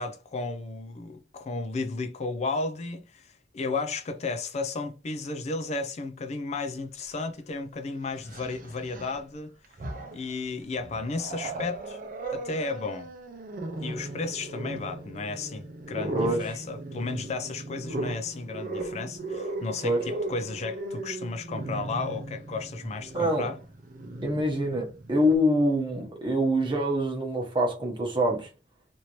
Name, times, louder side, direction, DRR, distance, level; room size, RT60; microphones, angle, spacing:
voice 1, 0.0-9.5 10.1-12.0 12.3-13.1 13.8-23.6, left 3 dB, 40° left, 0.4 m, -33 dB
Growling, 7.1-7.2 8.2-9.2 9.6-10.3 10.8-25.4, right 2 dB, 50° right, 0.6 m, -37 dB
voice 2, 23.1-23.5 24.2-28.5, equal, 30° right, 0.9 m, -25 dB
2.8 x 2.6 x 3.0 m
head